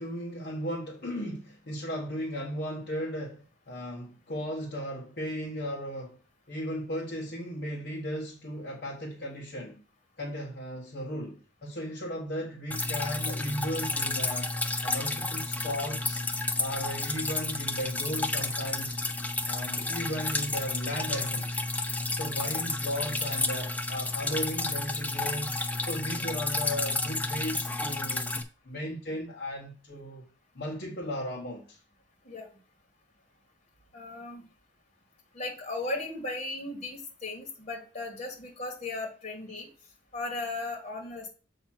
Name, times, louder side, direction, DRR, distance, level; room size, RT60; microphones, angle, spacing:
voice 1, 0.0-6.2 6.5-9.8 10.2-14.5 14.8-16.2 16.6-19.0 19.4-21.6 22.1-25.5 25.8-28.3 28.6-30.2 30.5-31.8, equal, 55° left, 1.2 m, -36 dB
Drip, 12.7-28.4, left 2 dB, 10° left, 0.5 m, -31 dB
voice 2, 33.9-34.5 35.3-39.7 40.1-41.3, left 2 dB, 35° left, 1.9 m, -36 dB
7.2 x 2.9 x 5.9 m
head